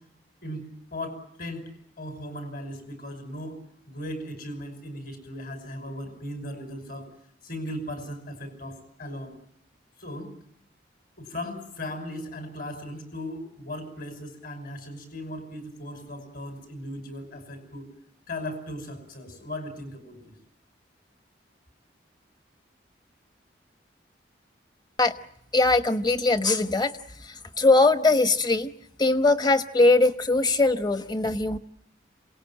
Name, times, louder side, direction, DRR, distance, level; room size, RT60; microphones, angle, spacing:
voice 1, 0.4-1.7 2.0-3.6 3.9-7.1 7.4-9.3 10.0-10.3 11.2-17.9 18.3-20.3, left 1 dB, 50° left, 7 dB, 5.8 m, -37 dB
voice 2, 25.5-26.9 27.2-28.7 29.0-31.6, left 2 dB, 20° left, 10 dB, 1.1 m, -21 dB
27.5 x 18.5 x 8.9 m, 0.78 s
head